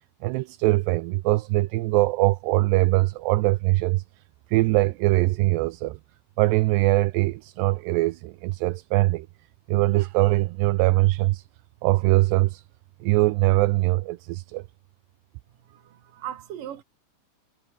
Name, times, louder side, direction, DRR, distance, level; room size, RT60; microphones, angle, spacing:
voice 1, 0.2-4.0 4.5-6.0 6.4-9.3 9.7-11.4 11.8-12.6 13.0-14.6, right 20 dB, 80° right, 2.7 m, -22 dB
voice 2, 15.7-16.8, right 10 dB, 55° right, 3.5 m, -38 dB
omnidirectional pair, 5.1 m